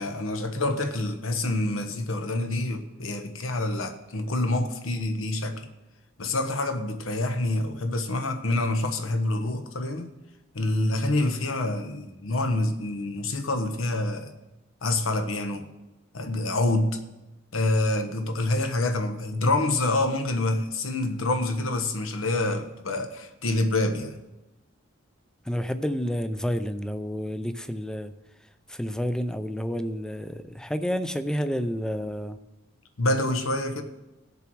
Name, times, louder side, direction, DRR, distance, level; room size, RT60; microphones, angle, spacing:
voice 1, 0.0-5.7 6.2-10.1 10.5-14.3 14.8-15.7 16.1-17.0 17.5-24.2 33.0-33.8, left 2 dB, 75° left, 1.1 m, -27 dB
voice 2, 25.5-28.1 28.7-32.4, equal, 5° left, 0.5 m, -30 dB
17.0 x 6.8 x 4.6 m
head